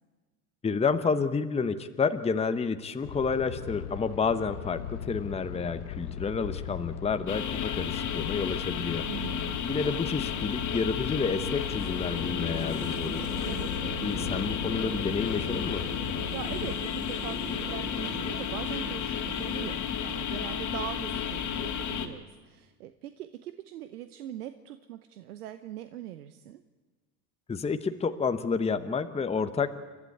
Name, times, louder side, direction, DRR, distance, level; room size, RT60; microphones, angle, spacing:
voice 1, 0.6-9.1 9.6-13.3 14.0-15.9 27.5-29.7, left 5 dB, 15° left, 9 dB, 1.0 m, -30 dB
sound 1, 3.0-16.7, left 9 dB, 85° left, 1.1 m, -39 dB
sound 2, 7.3-22.1, left 8 dB, 40° left, 2.4 m, -33 dB
voice 2, 9.1-9.6 13.4-13.7 16.1-26.6, right 12 dB, 85° right, 10 dB, 1.0 m, -41 dB
sound 3, 11.6-20.9, right 4 dB, 30° right, 5.0 m, -42 dB
29.5 x 12.0 x 8.5 m, 1.3 s
hypercardioid pair, 95°, 44 cm